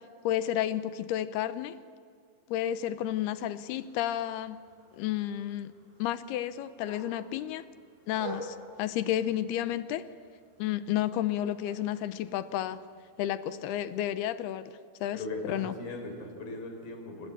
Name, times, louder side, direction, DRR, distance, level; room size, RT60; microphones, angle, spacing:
voice 1, 0.2-1.8 2.5-4.6 4.9-5.7 6.0-7.6 8.1-10.1 10.6-12.8 13.2-15.8, left 12 dB, 85° left, 13 dB, 2.9 m, -31 dB
sound 1, 3.6-14.2, right 2 dB, 80° right, 9.4 m, -50 dB
voice 2, 15.1-17.3, left 2 dB, 70° left, 5 dB, 5.8 m, -39 dB
28.5 x 23.5 x 8.7 m, 2.2 s
omnidirectional pair, 4.5 m